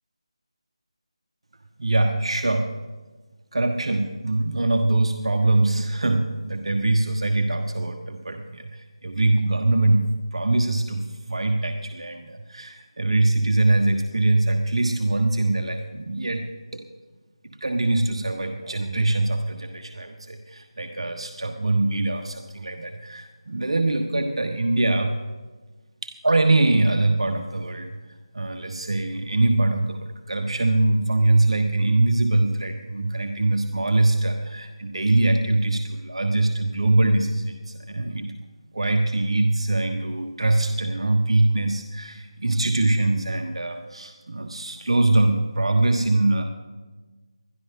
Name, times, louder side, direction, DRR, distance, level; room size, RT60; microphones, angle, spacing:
voice 1, 1.8-2.7 3.5-10.0 10.3-16.4 16.7-16.8 17.4-25.1 26.0-27.9 28.3-38.3 38.7-46.4, right 2 dB, 65° right, 4 dB, 1.3 m, -23 dB
21.0 x 12.5 x 3.8 m, 1.3 s
figure-of-eight pair, 165°, 3 cm